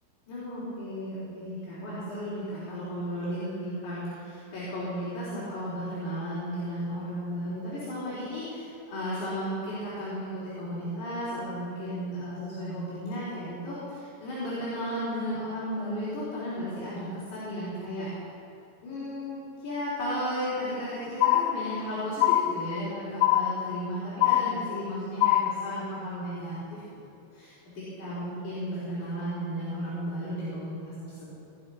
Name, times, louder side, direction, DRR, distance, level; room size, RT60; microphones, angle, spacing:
voice 1, 0.3-18.1 18.8-26.8 27.3-31.3, equal, 45° left, -10 dB, 4.9 m, -34 dB
sound 1, 21.2-21.9 22.2-22.9 23.2-23.9 24.2-24.9 25.2-25.9, left 14 dB, 85° left, 2.4 m, -24 dB
19.0 x 12.0 x 5.6 m, 2.7 s
omnidirectional pair, 5.4 m